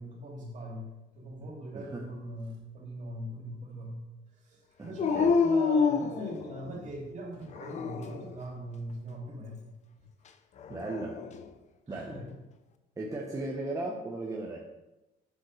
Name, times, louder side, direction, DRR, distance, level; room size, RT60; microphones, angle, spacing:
voice 1, 0.0-4.1 4.3-9.8 11.9-12.4, right 1 dB, 45° right, -2 dB, 2.7 m, -41 dB
voice 2, 4.8-5.3 10.7-11.2 11.9-12.3 13.0-14.6, right 2 dB, 20° right, -2 dB, 1.0 m, -36 dB
Dog, 5.0-6.9 7.5-8.3 10.6-11.4, left 5 dB, 45° left, 0.6 m, -28 dB
8.0 x 7.2 x 3.3 m, 1.0 s
cardioid pair, 110°, 17 cm